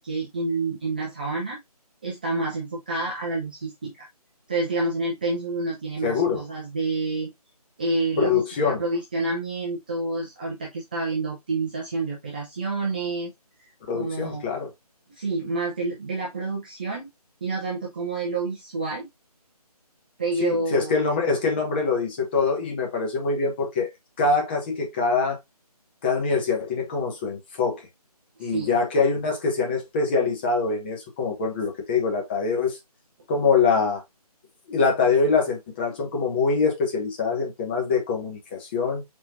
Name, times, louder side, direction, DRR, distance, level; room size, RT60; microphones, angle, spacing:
voice 1, 0.0-1.6 2.0-4.1 4.5-7.3 7.8-13.3 13.6-13.7 13.9-14.4 15.1-17.1 17.4-19.1 20.2-20.9 28.4-28.8, right 3 dB, 15° right, 0.5 m, -28 dB
voice 2, 6.0-6.4 8.2-8.8 13.9-14.7 20.4-23.9 24.2-25.4 26.0-27.8 28.4-32.8 33.3-34.0 34.7-39.0, left 4 dB, 15° left, 1.1 m, -24 dB
4.6 x 4.2 x 2.6 m
figure-of-eight pair, 160°, 20 cm